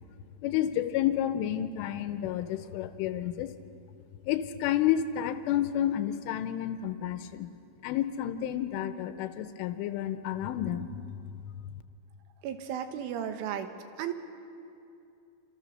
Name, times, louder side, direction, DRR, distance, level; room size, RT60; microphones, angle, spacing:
voice 1, 0.4-3.5 4.2-7.5 7.8-11.5, left 11 dB, 85° left, 10 dB, 3.4 m, -30 dB
voice 2, 12.4-13.7 14.0-14.1, right 9 dB, 80° right, 7 dB, 3.7 m, -34 dB
27.0 x 27.0 x 6.6 m, 2.6 s
omnidirectional pair, 5.7 m